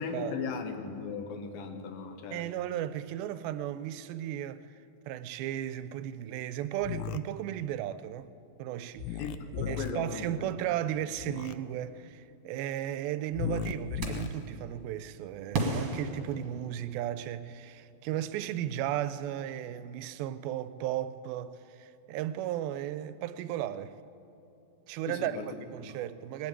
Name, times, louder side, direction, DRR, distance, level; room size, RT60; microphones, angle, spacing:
voice 1, 0.0-2.5 9.2-10.5 25.1-25.5, left 5 dB, 75° left, 2.8 m, -37 dB
voice 2, 2.3-4.7 5.1-8.3 8.6-9.2 9.6-24.0 24.9-26.5, right 11 dB, 85° right, 2.4 m, -35 dB
sound 1, 6.8-7.2 9.0-9.9 11.2-11.5 13.3-14.3, left 10 dB, 90° left, 2.5 m, -35 dB
sound 2, 14.0-14.5 15.5-17.1, right 2 dB, 50° right, 2.0 m, -34 dB
21.0 x 7.9 x 8.7 m
omnidirectional pair, 4.3 m